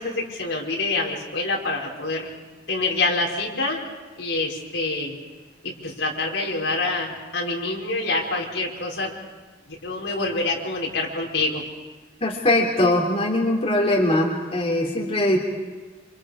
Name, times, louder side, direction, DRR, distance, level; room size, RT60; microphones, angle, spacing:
voice 1, 0.0-2.3 2.7-3.8 4.2-5.1 5.6-9.1 9.8-11.6, left 3 dB, 80° left, -1 dB, 4.8 m, -26 dB
voice 2, 12.2-15.4, left 1 dB, 35° left, -1 dB, 3.3 m, -21 dB
28.5 x 28.0 x 4.9 m, 1.4 s
head